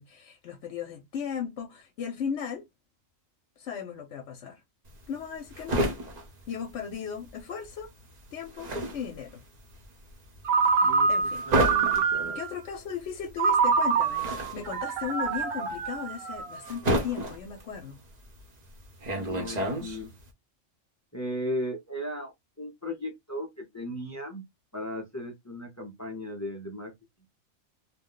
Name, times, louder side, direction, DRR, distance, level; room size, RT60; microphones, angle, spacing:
voice 1, 0.0-2.7 3.6-4.6 5.1-5.8 6.5-7.9 8.3-9.4 10.6-11.5 12.2-18.0, left 7 dB, 65° left, 0.9 m, -37 dB
sound 1, 4.9-7.4 7.7-20.3, right 1 dB, 40° right, 0.8 m, -32 dB
Ringtone, 10.5-12.5 13.4-16.7, right 5 dB, 85° right, 1.0 m, -26 dB
voice 2, 11.5-12.4 19.1-20.1 21.1-22.3 22.6-24.4 24.7-26.9, equal, 25° left, 0.4 m, -36 dB
2.6 x 2.1 x 3.7 m
omnidirectional pair, 1.3 m